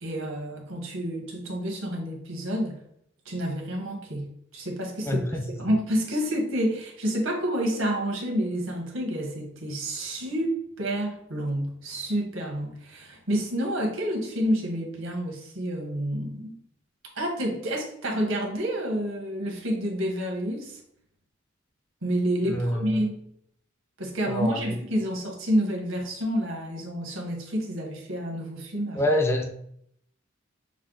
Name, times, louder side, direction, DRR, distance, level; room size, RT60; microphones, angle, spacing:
voice 1, 0.0-2.8 3.2-16.6 17.1-20.8 22.0-23.2 24.0-29.1, equal, 75° right, 0 dB, 1.2 m, -29 dB
voice 2, 5.0-5.4 22.5-22.9 24.3-24.8 29.0-29.4, left 1 dB, 10° left, 3 dB, 0.5 m, -26 dB
6.3 x 2.2 x 3.8 m, 0.70 s
head